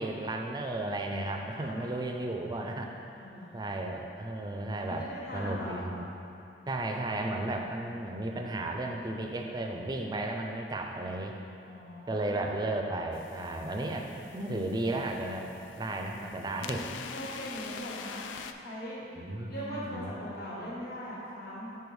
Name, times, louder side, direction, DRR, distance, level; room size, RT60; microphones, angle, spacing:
voice 1, 0.0-2.9 3.5-5.1 5.3-6.1 6.7-11.4 12.1-15.5 15.8-16.8 19.2-20.1, right 2 dB, 20° right, 2 dB, 0.4 m, -34 dB
voice 2, 3.2-3.5 4.8-5.9 11.6-12.5 16.6-18.3 18.6-19.0 19.5-21.8, equal, 55° left, -7 dB, 1.5 m, -40 dB
sound 1, 13.1-18.5, left 7 dB, 90° left, 0.3 m, -45 dB
5.2 x 4.5 x 4.7 m, 2.7 s
head